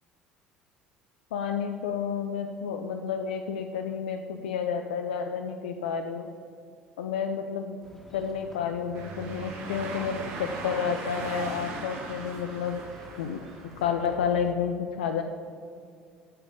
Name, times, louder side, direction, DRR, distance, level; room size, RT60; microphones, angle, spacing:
voice 1, 1.3-6.3 7.0-7.8 8.1-12.8 13.2-13.4 13.8-15.2, left 7 dB, 75° left, 5 dB, 0.5 m, -30 dB
sound 1, 7.8-14.5, left 1 dB, 5° left, 1.9 m, -50 dB
sound 2, 8.9-14.1, right 3 dB, 55° right, 1.7 m, -39 dB
8.4 x 7.0 x 6.8 m, 2.3 s
figure-of-eight pair, 60°, 5 cm